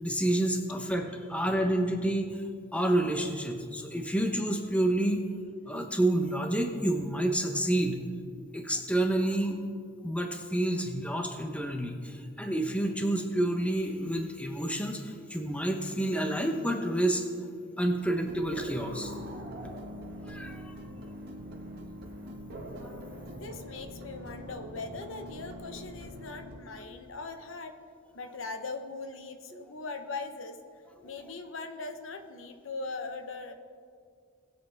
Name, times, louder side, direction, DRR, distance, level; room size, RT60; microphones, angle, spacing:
voice 1, 0.0-2.4 2.7-5.2 5.7-8.0 8.5-9.6 10.0-17.2 17.8-19.1 19.6-19.7 20.3-20.8 22.8-23.0, right 1 dB, 5° left, 4 dB, 0.8 m, -29 dB
sound 1, 18.2-26.6, equal, 55° right, 1.5 m, -43 dB
voice 2, 23.2-27.7 28.1-30.6 31.0-33.5, left 3 dB, 80° left, 6 dB, 0.9 m, -40 dB
20.0 x 7.9 x 3.5 m, 2.2 s
head